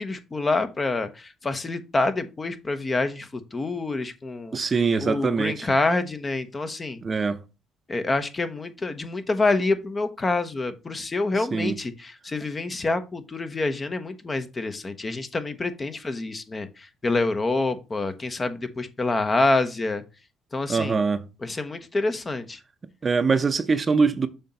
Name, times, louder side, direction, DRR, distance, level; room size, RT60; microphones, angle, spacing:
voice 1, 0.0-4.6 5.0-7.0 7.9-20.0 20.5-21.0 21.4-22.6, left 3 dB, 30° left, 0.9 m, -27 dB
voice 2, 4.5-5.6 7.0-7.4 11.5-11.8 20.7-21.2 23.0-24.3, right 4 dB, 35° right, 0.6 m, -23 dB
6.9 x 2.9 x 5.4 m
supercardioid pair, 60°, 0 cm